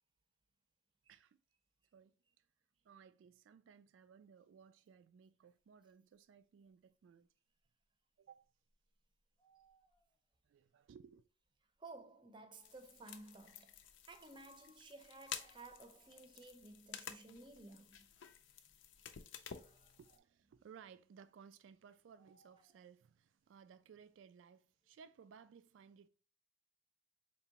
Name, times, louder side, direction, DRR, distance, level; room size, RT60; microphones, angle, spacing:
voice 1, 1.9-2.5 2.8-7.3 8.2-8.5 10.4-11.3 19.6-26.1, right 7 dB, 90° right, 0.3 m, -61 dB
sound 1, 7.6-7.7 8.4-10.4 11.1-11.2 12.8-12.9 15.2-16.4 22.2-23.0, right 4 dB, 30° left, 0.6 m, -73 dB
voice 2, 11.8-13.8 14.1-18.1 19.5-20.0, right 2 dB, 25° right, 0.5 m, -56 dB
sound 2, 12.6-20.2, left 8 dB, 85° left, 0.5 m, -52 dB
4.5 x 2.9 x 2.9 m
head